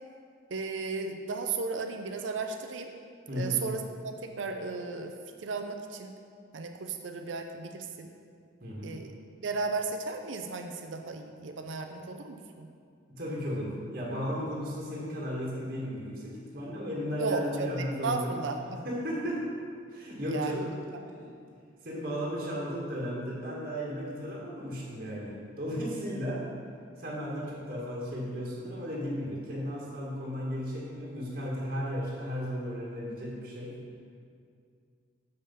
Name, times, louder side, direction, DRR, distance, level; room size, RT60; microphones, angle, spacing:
voice 1, 0.5-2.9 3.3-5.1 5.4-6.1 6.5-8.1 8.8-9.1 9.4-12.7 17.2-18.6 20.3-20.7 27.4-27.6, right 4 dB, 75° right, 5 dB, 0.5 m, -34 dB
voice 2, 3.3-3.6 8.6-9.0 13.1-18.3 18.7-19.4 19.9-20.7 21.0-21.3 21.8-26.4 27.0-33.8, equal, 45° right, -4 dB, 1.5 m, -35 dB
6.7 x 5.6 x 5.5 m, 2.2 s
head